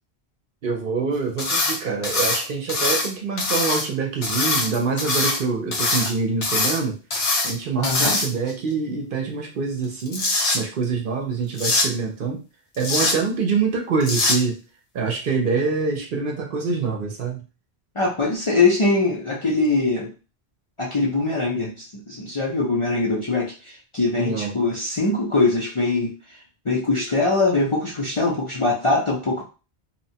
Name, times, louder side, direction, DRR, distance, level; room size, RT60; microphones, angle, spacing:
voice 1, 0.6-7.0 7.4-10.3 10.5-12.4 12.8-14.6 14.9-17.4 24.2-24.5, right 4 dB, 60° right, 1 dB, 0.7 m, -25 dB
sound 1, 1.4-1.8 2.0-3.1 3.4-3.8 4.2-5.4 5.7-6.1 6.4-6.8 7.1-7.5 7.8-8.5 9.8-10.6 11.6-11.9 12.8-13.1 14.0-14.4, left 2 dB, 80° left, 1.1 m, -22 dB
voice 2, 7.8-8.2 18.0-20.1 20.8-26.2 26.6-29.4, left 3 dB, 40° left, -4 dB, 0.5 m, -22 dB
2.8 x 2.1 x 2.7 m, 0.33 s
omnidirectional pair, 1.1 m